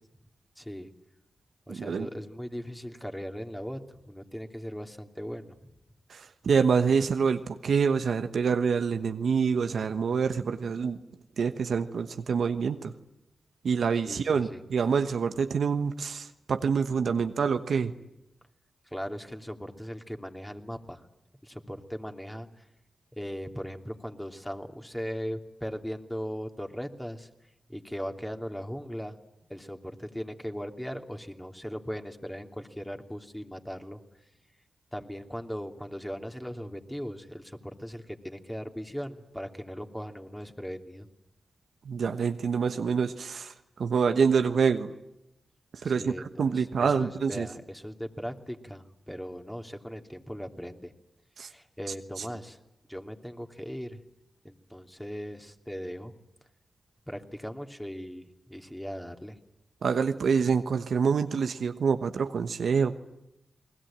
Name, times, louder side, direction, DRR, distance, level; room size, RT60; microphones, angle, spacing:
voice 1, 0.6-0.9 1.7-3.8 4.1-5.7 14.0-14.6 18.9-21.0 21.4-22.7 23.1-27.3 27.7-29.2 29.5-34.0 34.9-41.1 45.8-50.9 51.4-52.6 52.9-54.0 54.4-56.1 57.1-59.4, equal, 5° left, 4 dB, 2.9 m, -38 dB
voice 2, 1.7-2.1 6.1-11.0 11.4-12.9 13.6-17.9 41.8-43.5 43.8-44.9 45.8-47.5 51.4-51.5 52.2-52.3 59.8-62.9, right 6 dB, 80° right, 8 dB, 1.1 m, -26 dB
29.5 x 20.5 x 8.9 m, 0.89 s
supercardioid pair, 40°, 0 cm